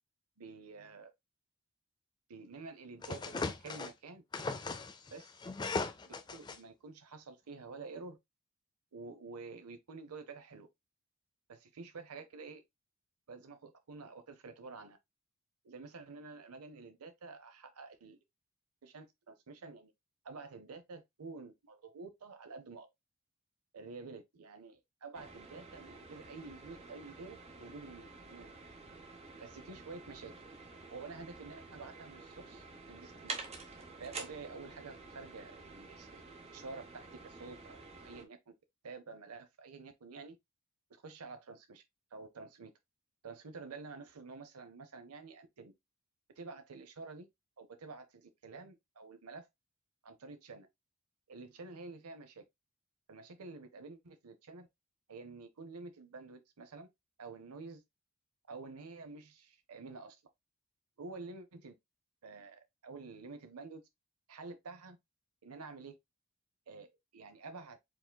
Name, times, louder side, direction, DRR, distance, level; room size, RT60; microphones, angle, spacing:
voice 1, 0.4-1.1 2.3-4.2 5.1-5.3 6.1-8.2 8.9-10.7 11.5-12.6 13.3-15.0 15.6-18.2 18.8-19.9 20.2-22.9 23.7-28.5 29.4-30.3 30.9-33.4 34.0-36.2 36.5-38.5 38.8-40.4 40.9-41.8 42.1-42.7 43.2-45.7 46.4-47.3 47.6-49.5 50.0-50.7 51.3-52.4 53.1-54.7 55.1-56.9 57.2-57.8 58.5-60.2 61.0-61.7 62.2-63.8 64.3-65.0 65.4-66.0 66.7-67.8, right 4 dB, 90° right, 0.7 m, -49 dB
sound 1, 3.0-3.9 4.3-6.6, left 3 dB, 20° left, 0.4 m, -38 dB
sound 2, 25.1-38.2, right 3 dB, 30° right, 0.8 m, -49 dB
4.8 x 3.7 x 2.2 m
head